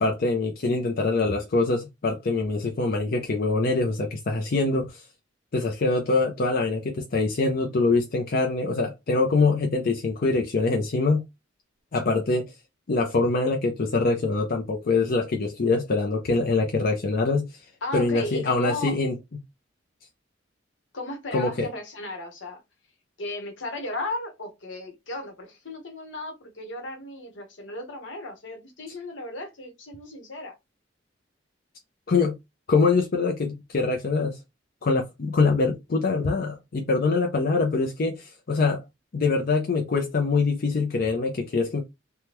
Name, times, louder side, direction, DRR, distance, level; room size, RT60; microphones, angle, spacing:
voice 1, 0.0-5.0 5.5-11.2 11.9-12.5 12.9-17.5 17.9-19.1 21.3-21.7 32.1-32.4 32.7-34.4 34.8-38.8 39.1-41.8, left 3 dB, 50° left, 0.5 m, -24 dB
voice 2, 17.8-19.0 20.9-22.6 23.2-30.6, left 2 dB, 75° left, 1.1 m, -35 dB
3.5 x 2.2 x 2.9 m
head